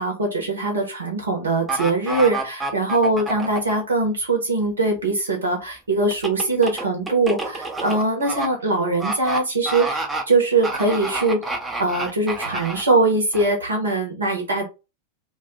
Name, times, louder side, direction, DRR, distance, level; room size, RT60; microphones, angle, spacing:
voice 1, 0.0-11.4 11.8-14.6, right 2 dB, 70° right, 2 dB, 0.9 m, -22 dB
sound 1, 1.7-3.7 6.1-8.5 9.0-9.4 9.7-10.2 10.6-12.8 13.3-13.4, right 2 dB, 10° right, 0.6 m, -28 dB
2.5 x 2.3 x 3.7 m, 0.29 s
figure-of-eight pair, 90°, 0 cm